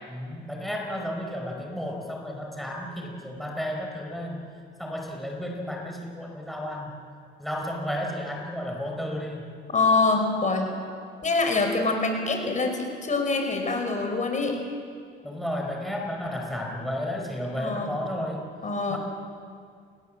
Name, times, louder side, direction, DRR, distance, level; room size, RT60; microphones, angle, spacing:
voice 1, 0.1-4.5 4.8-7.0 7.4-9.5 15.2-18.5 18.9-19.0, equal, ahead, 0 dB, 4.8 m, -32 dB
voice 2, 9.7-10.7 11.2-14.6 17.6-18.0 18.6-19.0, left 3 dB, 40° left, 4 dB, 5.2 m, -25 dB
29.5 x 20.0 x 7.6 m, 2.2 s
cardioid pair, 90°, 20 cm